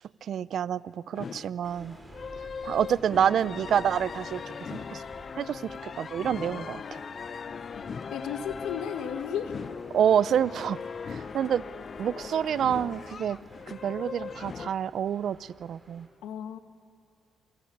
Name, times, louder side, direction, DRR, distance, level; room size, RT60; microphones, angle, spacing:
voice 1, 0.3-2.0 2.6-4.4 4.7-5.0 5.4-7.0 9.9-10.8 11.1-11.6 12.0-13.4 13.7-16.1, right 9 dB, 65° right, 18 dB, 0.6 m, -27 dB
sound 1, 1.1-14.7, left 6 dB, 45° left, 0.7 m, -39 dB
sound 2, 1.6-16.1, right 1 dB, 10° right, 5.1 m, -52 dB
voice 2, 8.1-9.5 16.2-16.6, left 8 dB, 90° left, 7 dB, 1.8 m, -34 dB
28.0 x 24.0 x 8.8 m, 2.4 s
cardioid pair, 90°, 0 cm